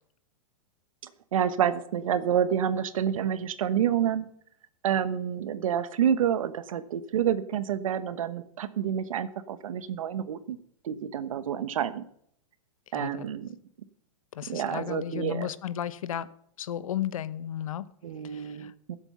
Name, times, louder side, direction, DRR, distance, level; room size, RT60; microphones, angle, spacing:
voice 1, 1.3-4.3 4.8-10.6 10.8-12.0 12.9-13.5 14.5-15.5 18.0-19.0, right 9 dB, 80° right, 13 dB, 1.1 m, -28 dB
voice 2, 12.9-13.3 14.3-16.3 16.6-17.8 18.2-18.7, left 10 dB, 80° left, 16 dB, 0.9 m, -34 dB
15.5 x 8.0 x 5.5 m, 0.66 s
supercardioid pair, 155°, 17 cm